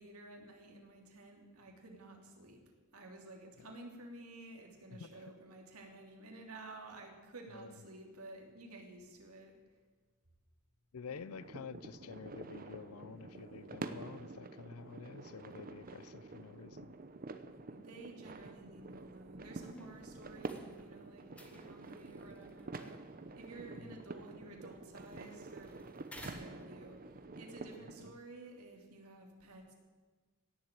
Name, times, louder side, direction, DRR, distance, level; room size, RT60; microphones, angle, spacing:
voice 1, 0.0-2.6 2.9-9.5 17.7-25.7 26.2-29.7, right 2 dB, 85° right, 2 dB, 3.0 m, -52 dB
voice 2, 4.9-5.2 7.5-7.7 10.9-16.9 23.8-23.9, left 5 dB, 80° left, 18 dB, 0.6 m, -49 dB
sound 1, 11.1-28.1, right 3 dB, 40° right, 0.8 m, -48 dB
sound 2, 19.7-27.2, left 1 dB, 5° left, 1.7 m, -58 dB
17.5 x 7.6 x 8.8 m, 1.4 s
head